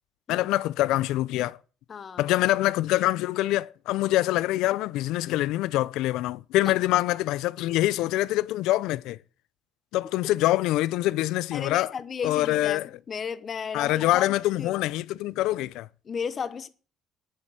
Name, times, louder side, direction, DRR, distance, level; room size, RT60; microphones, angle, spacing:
voice 1, 0.3-1.6 2.2-9.2 9.9-11.9 12.2-12.9 13.7-15.9, left 16 dB, 70° left, 0.6 m, -25 dB
voice 2, 1.9-2.3 6.6-6.7 11.5-14.8 16.0-16.7, left 6 dB, 25° left, 1.0 m, -34 dB
10.5 x 8.1 x 9.1 m
cardioid pair, 175°, 0 cm